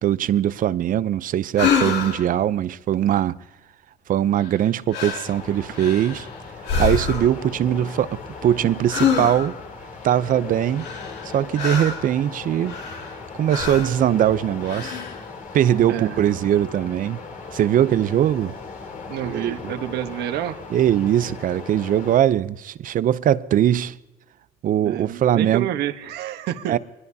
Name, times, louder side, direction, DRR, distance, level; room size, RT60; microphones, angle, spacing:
voice 1, 0.0-3.4 4.1-6.3 6.8-9.6 10.0-10.9 11.3-12.7 13.3-15.0 15.5-17.2 17.5-18.5 19.2-19.7 20.7-24.0 24.6-25.7 26.7-26.8, right 11 dB, 55° right, 0.6 m, -21 dB
sound 1, 1.6-2.3 4.4-4.6 4.9-5.3 5.7-6.3 6.6-7.4 8.9-9.6 10.8-12.1 12.6-13.2 13.5-14.0 14.6-15.2, left 6 dB, 80° left, 2.4 m, -26 dB
sound 2, 5.2-22.2, left 4 dB, 50° left, 3.2 m, -38 dB
voice 2, 19.1-20.6 24.8-26.8, right 11 dB, 75° right, 1.2 m, -29 dB
25.0 x 20.5 x 2.8 m
cardioid pair, 110°, 17 cm